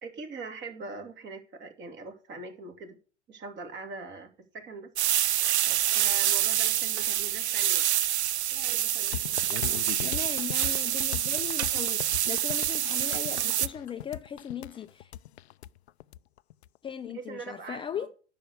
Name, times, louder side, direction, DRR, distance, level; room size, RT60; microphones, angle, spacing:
voice 1, 0.0-3.0 3.3-4.3 4.5-4.9 5.9-7.9 8.5-9.8 10.6-10.8 17.0-18.1, right 3 dB, 35° right, 2.7 m, -42 dB
sound 1, 5.0-13.7, right 12 dB, 75° right, 0.6 m, -27 dB
sound 2, 9.1-16.7, left 13 dB, 70° left, 0.5 m, -39 dB
voice 2, 10.0-15.1 16.8-18.1, left 8 dB, 15° left, 0.6 m, -38 dB
10.5 x 6.8 x 6.4 m
hypercardioid pair, 100°, 34 cm